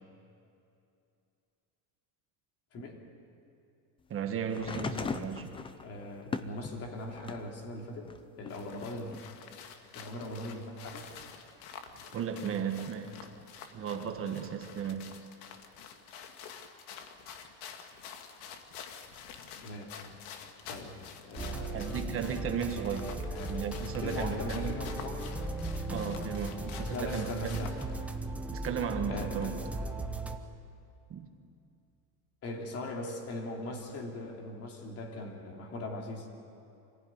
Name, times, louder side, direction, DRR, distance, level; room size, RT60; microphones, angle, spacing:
voice 1, 2.7-3.0 5.1-5.2 5.8-9.3 9.9-11.1 19.6-20.0 20.7-21.9 23.3-23.6 24.0-25.4 26.9-27.8 29.1-29.6 32.4-36.3, left 1 dB, 35° left, 1 dB, 3.1 m, -40 dB
voice 2, 4.1-5.5 12.1-13.2 13.7-15.1 21.7-23.1 23.5-24.8 25.9-27.6 28.5-29.5 31.1-31.3, right 7 dB, 30° right, 5 dB, 1.5 m, -35 dB
sound 1, 4.5-7.5 8.0-9.2 10.2-10.3, left 5 dB, 15° left, 0.5 m, -39 dB
sound 2, 8.5-28.0, left 7 dB, 75° left, 2.1 m, -49 dB
sound 3, 21.4-30.4, right 2 dB, 5° right, 0.9 m, -37 dB
26.0 x 16.0 x 9.5 m, 2.6 s
cardioid pair, 155°, 43 cm